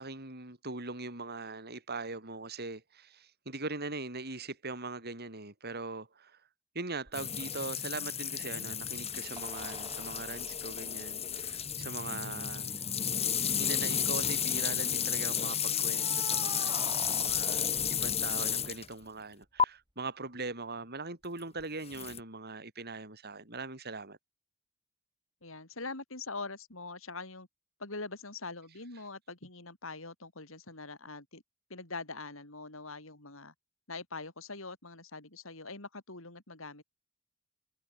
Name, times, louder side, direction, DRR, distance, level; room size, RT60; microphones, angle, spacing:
voice 1, 0.0-6.4 6.7-12.7 13.6-24.2, right 3 dB, 50° right, 7.2 m, -41 dB
sound 1, 7.1-18.9 19.6-19.7 21.9-22.2, left 8 dB, 30° left, 3.4 m, -32 dB
sound 2, 7.1-7.2 9.4-11.7 12.7-12.8 13.1-13.2 13.7-14.2 15.9-19.1 21.6-21.7, right 3 dB, 25° right, 5.1 m, -47 dB
voice 2, 25.4-27.5 27.8-31.4 31.7-33.5 33.9-36.8, left 3 dB, 70° left, 5.4 m, -43 dB
head